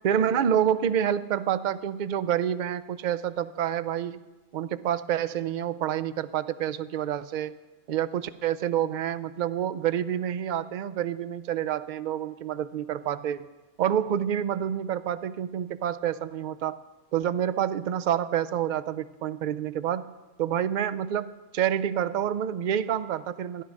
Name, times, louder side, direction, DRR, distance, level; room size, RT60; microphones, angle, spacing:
voice 1, 0.0-4.2 4.5-7.6 7.9-13.5 13.8-16.8 17.1-20.0 20.4-23.6, right 9 dB, 60° right, 14 dB, 0.5 m, -28 dB
13.0 x 10.0 x 6.3 m, 1.2 s
omnidirectional pair, 1.2 m